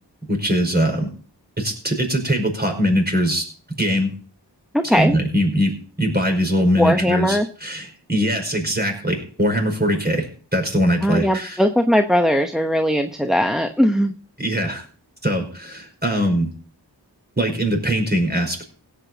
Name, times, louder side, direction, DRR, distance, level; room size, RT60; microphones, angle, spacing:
voice 1, 0.3-1.1 1.6-3.4 3.8-4.1 4.9-10.3 10.5-11.6 14.4-14.8 15.2-16.5 17.4-18.6, equal, 20° right, 3 dB, 5.3 m, -21 dB
voice 2, 4.7-5.2 6.8-7.5 11.0-14.1, equal, ahead, 6 dB, 1.0 m, -19 dB
17.0 x 8.5 x 4.0 m, 0.40 s
wide cardioid pair, 40°, 43 cm